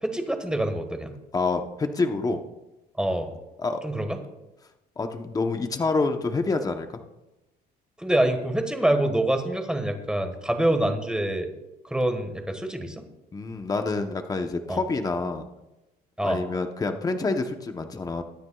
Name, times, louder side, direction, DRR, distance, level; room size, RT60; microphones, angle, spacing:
voice 1, 0.0-1.1 3.0-3.3 3.8-4.2 8.0-11.5 11.9-13.0 14.7-14.8 16.2-16.4, right 1 dB, 5° right, 6 dB, 1.5 m, -25 dB
voice 2, 1.3-2.4 3.6-3.8 5.0-7.0 13.3-15.5 16.2-18.2, left 3 dB, 20° left, 6 dB, 0.9 m, -27 dB
21.5 x 9.5 x 2.4 m, 1.0 s
cardioid pair, 110°, 17 cm